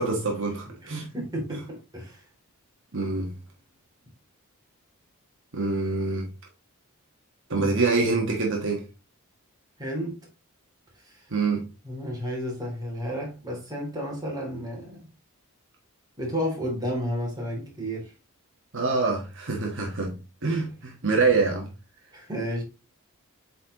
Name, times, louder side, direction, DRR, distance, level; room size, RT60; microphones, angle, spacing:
voice 1, 0.0-1.1 2.9-3.4 5.5-6.3 7.5-8.9 11.3-11.7 18.7-21.7, right 3 dB, 60° right, 1.4 m, -25 dB
voice 2, 0.8-2.2 7.5-7.8 9.8-10.2 11.0-11.2 11.8-15.1 16.2-18.1 22.1-22.6, equal, 20° right, 2.8 m, -32 dB
8.2 x 4.3 x 2.9 m
head